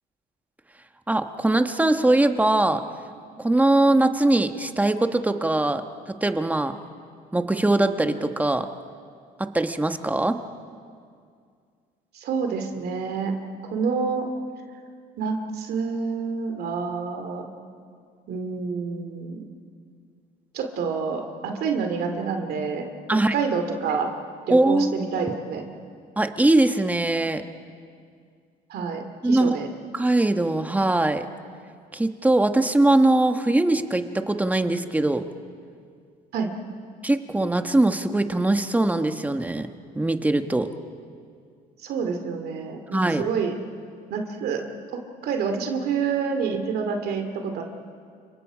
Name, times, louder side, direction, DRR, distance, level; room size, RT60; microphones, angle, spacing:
voice 1, 1.1-2.8 3.4-5.8 6.1-6.7 7.3-8.7 9.4-10.4 23.1-23.3 24.5-25.0 26.2-27.4 29.2-29.6 29.9-31.3 31.9-35.2 37.0-39.7 39.9-40.7 42.9-43.3, right 2 dB, 10° right, 7 dB, 1.2 m, -21 dB
voice 2, 12.1-13.3 13.7-14.3 15.2-17.5 18.3-19.4 20.5-24.1 24.5-25.6 28.7-29.7 36.3-36.5 41.8-43.5 44.1-44.6 44.9-47.6, right 5 dB, 70° right, 4 dB, 2.5 m, -28 dB
29.5 x 26.0 x 5.0 m, 2.2 s
cardioid pair, 110°, 17 cm